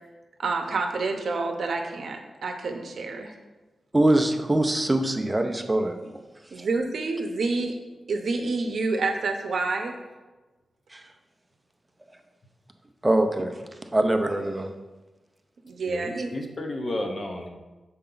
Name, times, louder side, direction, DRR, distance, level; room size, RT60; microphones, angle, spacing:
voice 1, 0.4-3.3 6.5-7.7 8.1-9.9 15.6-16.3, right 3 dB, 60° right, 0.7 m, -28 dB
voice 2, 3.9-6.2 6.6-6.7 10.9-11.1 13.0-14.7, right 1 dB, 10° right, 0.5 m, -24 dB
voice 3, 15.9-17.5, left 1 dB, 35° left, 0.7 m, -32 dB
6.7 x 4.2 x 3.8 m
wide cardioid pair, 145°, 0 cm